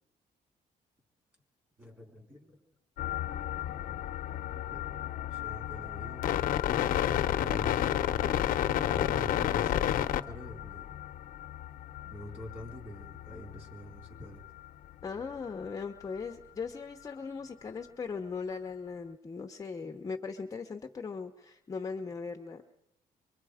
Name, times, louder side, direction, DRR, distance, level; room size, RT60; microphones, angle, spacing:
voice 1, 1.8-2.6 4.5-5.0 5.3-6.2 7.0-7.9 8.7-10.9 12.0-14.4, equal, 15° right, 1 dB, 4.3 m, -46 dB
sound 1, 3.0-14.7 15.0-15.1 15.3-15.7 16.0-16.2, left 11 dB, 75° left, 0.8 m, -32 dB
voice 2, 15.0-22.6, left 5 dB, 20° left, 3 dB, 0.9 m, -39 dB
24.0 x 23.0 x 5.0 m, 0.82 s
cardioid pair, 150°, 15 cm